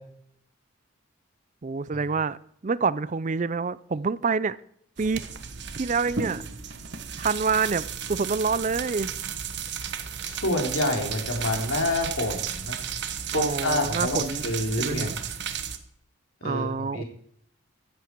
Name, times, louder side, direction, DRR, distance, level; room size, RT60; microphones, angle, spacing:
voice 1, 1.6-2.4 2.6-4.6 5.0-5.3 5.7-6.4 7.2-9.1 13.3-15.2 16.4-17.0, right 4 dB, 35° right, 18 dB, 0.4 m, -27 dB
sound 1, 5.0-15.8, right 7 dB, 55° right, 1.3 m, -33 dB
voice 2, 10.2-12.8 13.3-15.1 16.4-17.0, left 1 dB, 80° left, 2 dB, 3.4 m, -27 dB
15.5 x 11.0 x 4.6 m, 0.71 s
head